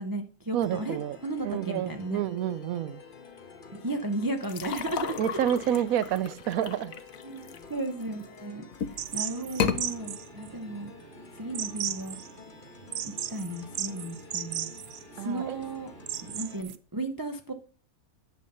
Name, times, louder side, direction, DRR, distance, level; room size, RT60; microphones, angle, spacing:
voice 1, 0.0-2.2 3.7-6.1 7.2-10.9 11.3-12.2 13.0-14.7 15.1-17.5, right 2 dB, 20° right, 0.7 m, -35 dB
voice 2, 0.5-1.2 1.4-3.0 5.2-6.9 15.2-15.6, right 10 dB, 80° right, 1.1 m, -29 dB
sound 1, 0.6-16.6, left 5 dB, 40° left, 1.4 m, -50 dB
sound 2, 4.4-8.2 8.7-9.1 9.5-9.8, left 7 dB, 75° left, 1.3 m, -33 dB
sound 3, 9.0-16.8, right 10 dB, 60° right, 0.8 m, -36 dB
10.5 x 7.4 x 5.5 m
omnidirectional pair, 1.5 m